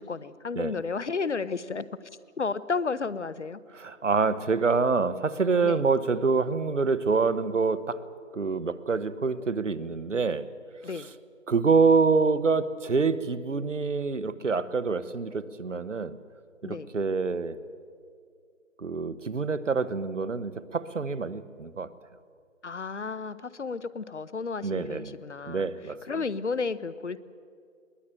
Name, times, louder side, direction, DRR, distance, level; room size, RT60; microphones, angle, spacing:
voice 1, 0.0-2.1 2.4-3.6 5.6-5.9 10.8-11.1 16.6-16.9 22.6-25.7 26.1-27.2, left 4 dB, 60° left, 17 dB, 0.9 m, -32 dB
voice 2, 3.7-8.0 8.3-10.5 10.9-11.1 11.5-16.2 16.6-17.6 18.8-21.9 24.6-25.2 25.5-26.0, right 4 dB, 65° right, 15 dB, 1.2 m, -26 dB
21.5 x 17.0 x 9.0 m, 2.2 s
figure-of-eight pair, 170°, 39 cm